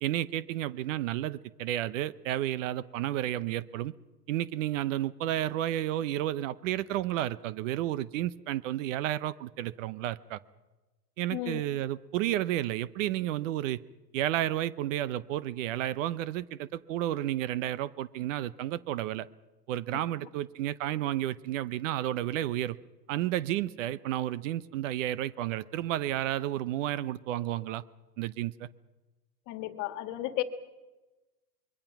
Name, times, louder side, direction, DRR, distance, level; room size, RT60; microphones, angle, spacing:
voice 1, 0.0-3.9 4.3-10.4 11.2-13.8 14.1-19.3 19.7-22.8 23.1-27.8 28.2-28.7, right 13 dB, 50° right, 19 dB, 0.8 m, -31 dB
voice 2, 11.3-11.6 19.9-20.0 29.5-30.4, left 15 dB, 40° left, 10 dB, 1.7 m, -34 dB
25.5 x 22.5 x 5.9 m, 1.1 s
hypercardioid pair, 130°, 48 cm